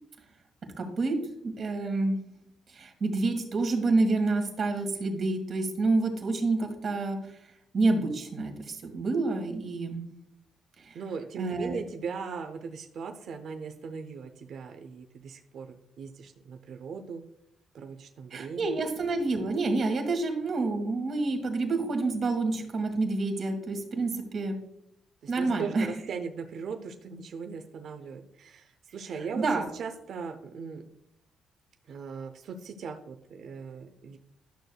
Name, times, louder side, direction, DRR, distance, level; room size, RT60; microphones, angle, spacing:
voice 1, 0.8-2.2 2.7-7.4 7.7-10.0 10.8-11.0 11.4-11.8 18.3-24.5 25.3-25.9 29.3-29.6, right 3 dB, 50° right, 4 dB, 1.7 m, -28 dB
voice 2, 10.9-17.2 17.7-18.8 25.2-29.4 29.7-30.8 31.9-34.2, right 5 dB, 65° right, 6 dB, 0.6 m, -39 dB
11.5 x 6.4 x 2.3 m, 0.76 s
cardioid pair, 90°, 0 cm